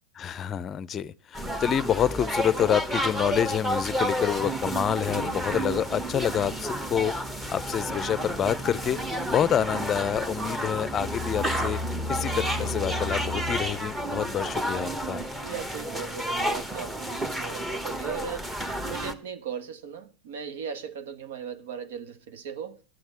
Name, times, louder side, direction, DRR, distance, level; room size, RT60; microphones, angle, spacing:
voice 1, 0.2-9.0 9.3-11.8 12.1-15.3, left 9 dB, 25° left, 0.6 m, -27 dB
sound 1, 1.3-19.1, equal, 5° right, 1.1 m, -31 dB
voice 2, 5.5-5.8 15.4-22.8, right 7 dB, 75° right, 1.4 m, -38 dB
11.5 x 7.2 x 8.1 m
supercardioid pair, 140°, 0 cm